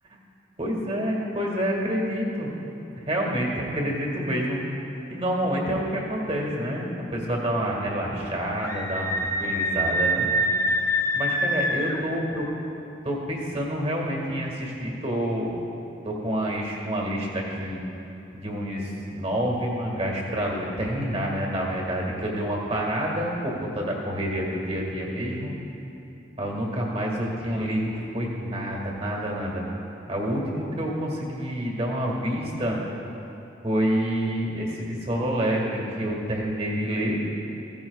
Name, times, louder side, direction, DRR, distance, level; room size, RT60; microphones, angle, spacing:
voice 1, 0.6-2.5 3.0-4.6 5.1-9.1 9.4-10.3 11.1-12.4 13.0-15.5 16.0-17.8 18.3-25.5 26.4-29.6 30.1-32.8 33.6-37.2, equal, 30° right, -1 dB, 1.8 m, -28 dB
Screaming, 8.6-12.0, equal, 15° left, 0.8 m, -25 dB
16.0 x 14.5 x 2.4 m, 2.9 s
head